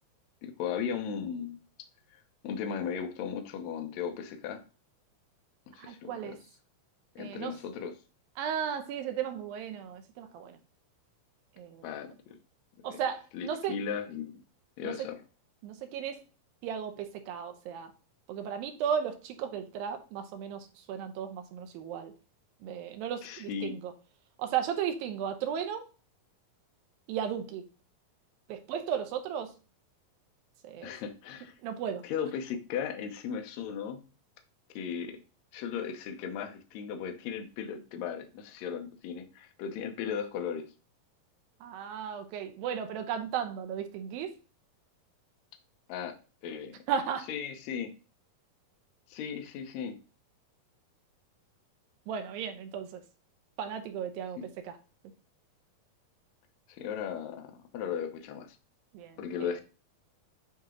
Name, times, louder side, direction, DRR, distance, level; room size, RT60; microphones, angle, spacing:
voice 1, 0.4-1.6 2.1-2.2 2.4-4.6 5.7-6.4 7.1-7.9 11.8-12.3 12.8-13.0 13.3-14.4 14.8-15.2 23.2-23.7 30.8-31.5 32.0-34.0 34.7-35.2 35.5-40.6 45.9-46.1 46.4-46.7 47.3-47.9 49.1-50.0 54.4-54.5 56.7-58.5 59.2-59.6, left 7 dB, 75° left, 6 dB, 1.6 m, -36 dB
voice 2, 5.8-6.4 7.2-7.6 8.4-10.6 11.6-11.9 12.8-13.8 14.8-15.1 15.6-16.2 16.6-17.9 18.3-22.1 22.6-23.9 24.4-25.8 27.1-27.7 28.5-29.5 30.6-30.9 31.6-32.0 41.6-44.3 46.9-47.3 52.1-53.0 53.6-54.8 58.9-59.5, right 8 dB, 80° right, 7 dB, 2.6 m, -35 dB
8.7 x 2.9 x 3.7 m, 0.34 s
omnidirectional pair, 4.2 m